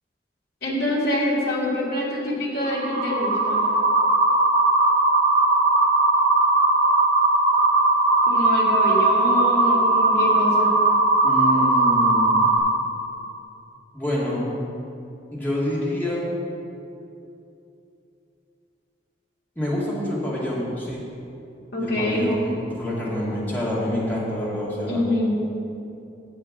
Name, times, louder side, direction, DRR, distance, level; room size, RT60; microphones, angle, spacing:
voice 1, 0.6-3.6 8.3-10.7 21.7-22.3 24.9-25.4, left 1 dB, 55° left, -5 dB, 2.2 m, -25 dB
sound 1, 2.6-12.6, right 2 dB, 65° right, 2.4 m, -19 dB
voice 2, 11.2-12.5 13.9-14.4 15.3-16.2 19.6-21.0 21.8-25.0, left 1 dB, 10° left, -7 dB, 2.1 m, -27 dB
7.3 x 6.3 x 7.3 m, 2.8 s
head